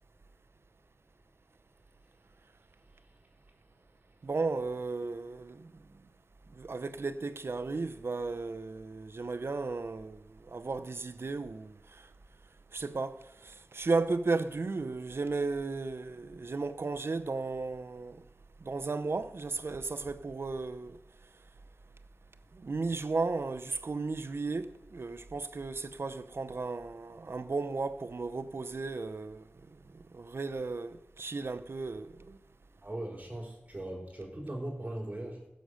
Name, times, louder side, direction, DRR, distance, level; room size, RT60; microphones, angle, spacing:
voice 1, 4.2-5.7 6.6-12.0 12.7-13.2 13.4-18.2 18.6-21.0 22.6-29.4 29.9-32.4, right 3 dB, 70° right, 0.7 m, -35 dB
voice 2, 32.8-35.5, right 1 dB, 35° right, 4.5 m, -39 dB
15.5 x 6.5 x 6.4 m
wide cardioid pair, 70°, 4 cm